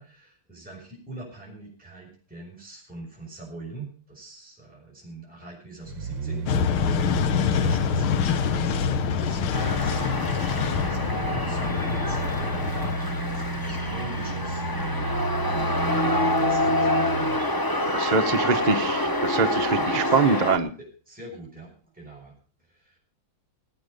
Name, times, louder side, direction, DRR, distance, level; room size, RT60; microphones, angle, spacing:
voice 1, 0.0-19.3 19.7-20.4 20.8-23.0, right 2 dB, 5° right, -3 dB, 5.9 m, -43 dB
Small Bulldozer Engine, 5.8-17.4 17.8-17.9, right 3 dB, 60° right, 2.1 m, -32 dB
sound 1, 6.5-13.0, left 8 dB, 75° left, 1.8 m, -26 dB
sound 2, 9.5-20.6, left 1 dB, 35° left, 0.3 m, -27 dB
voice 2, 17.9-20.7, right 5 dB, 40° right, 6 dB, 0.5 m, -24 dB
18.5 x 9.2 x 5.3 m, 0.40 s
omnidirectional pair, 2.4 m